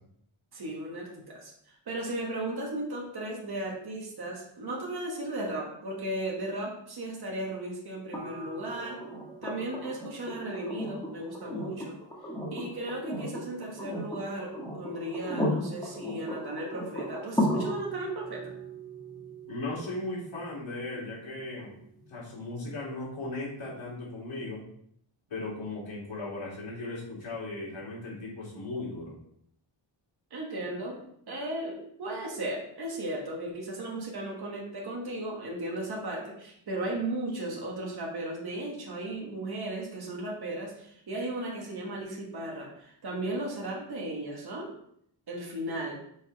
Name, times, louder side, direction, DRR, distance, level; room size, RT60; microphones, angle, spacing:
voice 1, 0.5-9.0 9.4-12.0 12.5-18.5 30.3-31.0 31.3-44.7 45.3-46.0, right 1 dB, 50° right, -2 dB, 1.6 m, -36 dB
sound 1, 8.1-22.1 23.8-23.9, equal, 10° left, 1.3 m, -36 dB
voice 2, 19.5-21.7 22.1-24.6 25.3-29.1, left 2 dB, 65° left, -5 dB, 3.0 m, -37 dB
6.6 x 4.2 x 4.7 m, 0.68 s
wide cardioid pair, 170°, 49 cm